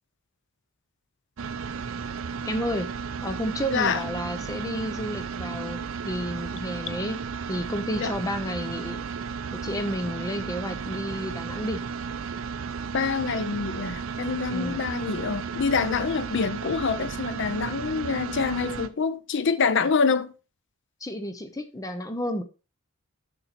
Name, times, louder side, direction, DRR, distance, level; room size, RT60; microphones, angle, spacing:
sound 1, 1.4-18.9, right 5 dB, 70° right, 0.5 m, -34 dB
voice 1, 2.5-2.9 3.2-5.8 6.1-7.2 7.5-9.0 9.6-11.8 14.5-14.9 21.0-22.4, equal, 15° left, 0.6 m, -31 dB
voice 2, 3.7-4.0 8.0-8.1 12.9-20.3, left 5 dB, 60° left, 0.6 m, -26 dB
7.0 x 5.5 x 4.1 m
head